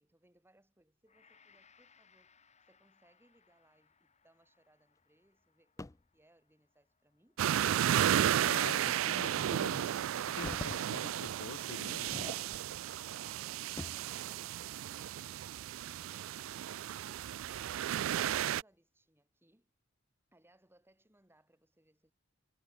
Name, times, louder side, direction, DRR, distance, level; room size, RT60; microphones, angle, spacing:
voice 1, 0.0-2.3 2.7-5.9 6.1-7.4 16.0-19.7 20.3-22.1, right 1 dB, 10° right, 3.2 m, -69 dB
Gong, 1.1-9.4 9.8-10.0, left 6 dB, 35° left, 2.9 m, -70 dB
sound 1, 5.8-6.1 8.5-8.7 9.2-9.3 10.1-10.9 11.2-11.4 11.9-12.9 13.2-14.1 15.7-16.8 17.3-17.4 18.1-18.5, left 2 dB, 15° left, 0.5 m, -47 dB
sound 2, 7.4-18.6, right 10 dB, 80° right, 0.3 m, -33 dB
voice 2, 8.4-9.9 10.3-12.1, left 4 dB, 85° left, 1.0 m, -46 dB
head